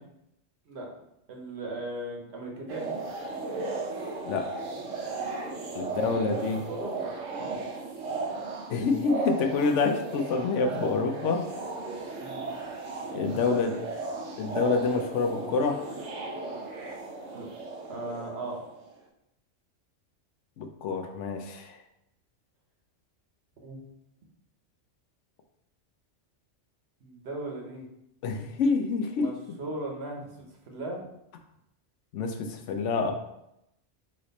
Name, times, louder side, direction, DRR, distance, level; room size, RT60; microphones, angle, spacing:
voice 1, 1.3-2.9 6.4-7.1 7.4-7.6 12.2-12.5 13.3-13.8 17.3-17.5 17.9-18.6 23.6-23.8 27.0-27.9 29.2-29.3 29.6-30.3 30.7-31.0, right 2 dB, 65° right, 0 dB, 1.2 m, -38 dB
sound 1, 2.7-18.9, right 3 dB, 90° right, 1.1 m, -36 dB
voice 2, 5.7-6.6 8.7-11.4 13.1-13.7 14.4-15.9 20.6-21.8 28.2-29.3 32.1-33.1, left 4 dB, 80° left, 5 dB, 0.9 m, -27 dB
3.8 x 3.2 x 4.0 m, 0.82 s
omnidirectional pair, 1.2 m